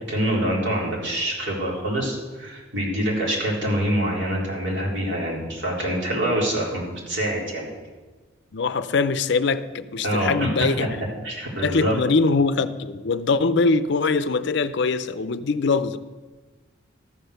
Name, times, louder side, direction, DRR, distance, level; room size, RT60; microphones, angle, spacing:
voice 1, 0.1-7.7 10.0-10.7 11.2-11.9, right 1 dB, 60° right, 4.0 m, -25 dB
voice 2, 8.5-11.0 11.6-16.0, left 4 dB, 60° left, 0.5 m, -22 dB
13.5 x 7.7 x 6.7 m
head